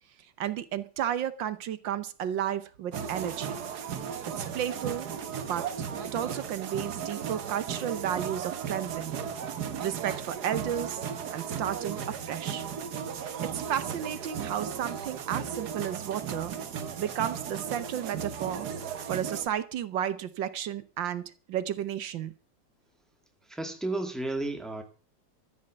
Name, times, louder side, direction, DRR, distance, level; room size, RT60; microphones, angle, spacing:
voice 1, 0.4-3.6 4.4-5.1 5.5-5.7 6.1-9.2 9.8-11.0 11.3-12.6 13.2-16.6 17.0-18.7 19.1-22.3, right 10 dB, 80° right, 14 dB, 1.7 m, -33 dB
sound 1, 2.9-19.5, right 7 dB, 60° right, 1.7 m, -36 dB
voice 2, 23.5-24.8, right 2 dB, ahead, 5 dB, 2.0 m, -32 dB
14.0 x 10.5 x 6.7 m, 0.37 s
omnidirectional pair, 2.0 m